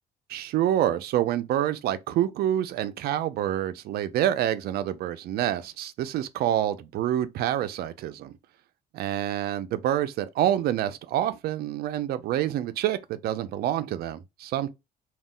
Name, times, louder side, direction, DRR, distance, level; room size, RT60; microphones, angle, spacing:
voice 1, 0.3-8.3 8.9-14.7, right 11 dB, 65° right, 0.4 m, -27 dB
2.3 x 2.1 x 3.5 m
cardioid pair, 110°, 17 cm